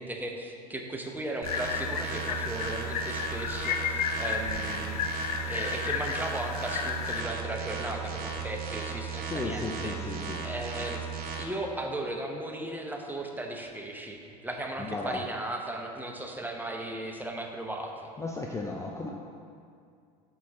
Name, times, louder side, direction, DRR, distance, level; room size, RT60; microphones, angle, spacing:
voice 1, 0.0-5.0 5.4-11.1 11.4-18.1, right 1 dB, 10° right, 1 dB, 0.9 m, -36 dB
sound 1, 1.4-7.2, left 7 dB, 90° left, 0.5 m, -33 dB
sound 2, 1.4-11.4, right 5 dB, 50° right, 1.0 m, -36 dB
voice 2, 9.3-10.5 14.8-15.2 18.2-19.1, left 3 dB, 15° left, -1 dB, 0.6 m, -35 dB
6.3 x 4.4 x 6.0 m, 2.3 s
hypercardioid pair, 85°, 20 cm